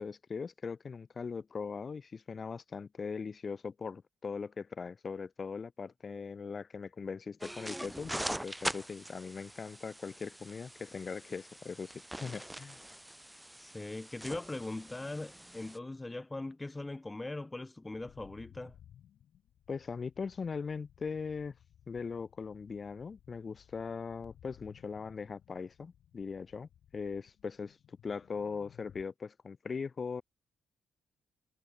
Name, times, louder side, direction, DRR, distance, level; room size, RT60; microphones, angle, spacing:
voice 1, 0.0-12.8 19.7-21.5 21.9-30.2, left 5 dB, 40° left, 0.7 m, -40 dB
sound 1, 7.4-15.8, right 1 dB, 5° right, 1.8 m, -43 dB
voice 2, 13.6-18.8, left 2 dB, 20° left, 1.6 m, -40 dB
sound 2, 17.9-29.0, left 10 dB, 70° left, 7.9 m, -60 dB
cardioid pair, 75°, 0 cm